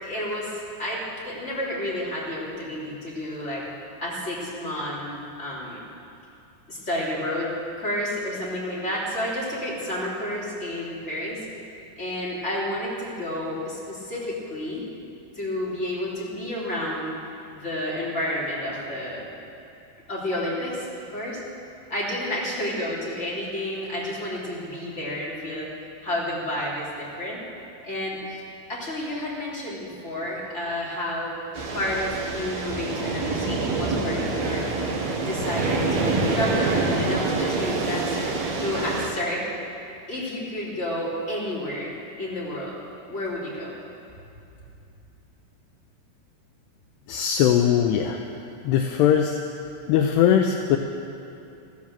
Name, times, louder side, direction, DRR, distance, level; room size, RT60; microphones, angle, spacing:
voice 1, 0.0-3.6 4.0-5.8 6.7-7.5 7.8-11.4 12.0-14.8 15.3-17.1 17.5-19.2 20.1-21.4 21.9-25.7 26.0-27.4 27.8-28.4 28.7-31.3 31.7-34.6 35.2-39.4 40.1-41.9 42.2-42.7 43.1-43.8, left 1 dB, 15° left, -7 dB, 3.1 m, -30 dB
sound 1, 31.5-39.1, right 3 dB, 60° right, 2.0 m, -26 dB
voice 2, 47.1-48.3 48.6-49.4 49.9-50.8, left 9 dB, 80° left, 4 dB, 2.6 m, -20 dB
14.5 x 13.0 x 7.4 m, 2.8 s
omnidirectional pair, 5.1 m